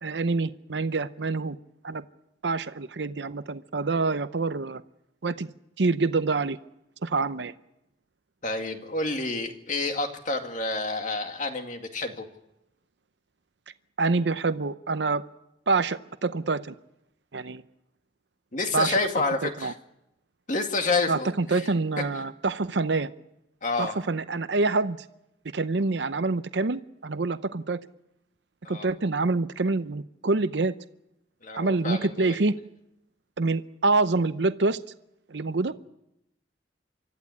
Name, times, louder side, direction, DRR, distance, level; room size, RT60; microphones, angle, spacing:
voice 1, 0.0-1.6 1.8-2.0 2.4-4.8 5.2-5.5 5.8-6.6 7.0-7.5 14.0-15.2 15.7-16.7 17.3-17.6 18.7-18.9 19.6-19.7 21.1-23.1 23.8-25.0 25.5-27.8 28.7-30.7 31.5-32.5 33.4-34.8 35.3-35.7, right 3 dB, 75° right, 13 dB, 0.7 m, -26 dB
voice 2, 8.4-12.3 18.5-19.7 20.5-21.7 23.6-24.0 28.6-28.9 31.4-32.4, left 3 dB, 45° left, 5 dB, 2.1 m, -29 dB
25.0 x 14.0 x 8.5 m, 0.85 s
head